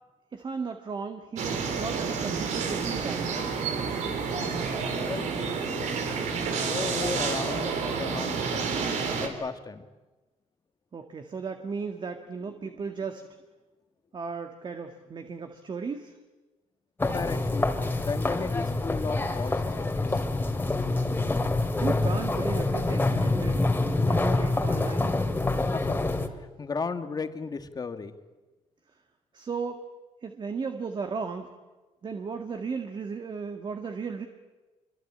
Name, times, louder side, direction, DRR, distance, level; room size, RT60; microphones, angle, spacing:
voice 1, 0.3-3.6 10.9-13.2 14.1-16.2 21.8-23.7 24.0-25.2 29.3-29.8 30.2-31.5 32.0-34.3, right 5 dB, 40° right, 6 dB, 1.9 m, -35 dB
sound 1, 1.4-9.3, right 5 dB, 80° right, 4.0 m, -29 dB
voice 2, 5.1-6.0 6.5-8.8 9.2-9.8 17.0-17.7 18.0-20.2 25.6-26.0 26.6-28.1, left 4 dB, 30° left, 9 dB, 1.8 m, -35 dB
sound 2, 17.0-26.3, left 2 dB, 15° left, 2.5 m, -26 dB
26.0 x 24.0 x 8.8 m, 1.2 s
cardioid pair, 105°, 12 cm